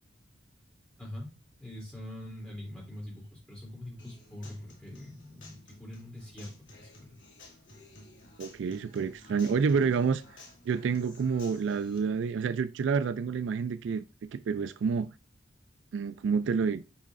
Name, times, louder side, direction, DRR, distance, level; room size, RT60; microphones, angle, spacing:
voice 1, 1.0-1.3 1.6-7.2, left 1 dB, 5° left, 2.8 m, -43 dB
Human voice / Acoustic guitar, 4.0-12.0, left 2 dB, 80° left, 2.0 m, -54 dB
voice 2, 8.4-10.2 10.7-14.0 14.3-15.1 15.9-16.8, right 5 dB, 75° right, 0.3 m, -28 dB
7.2 x 5.4 x 2.5 m
head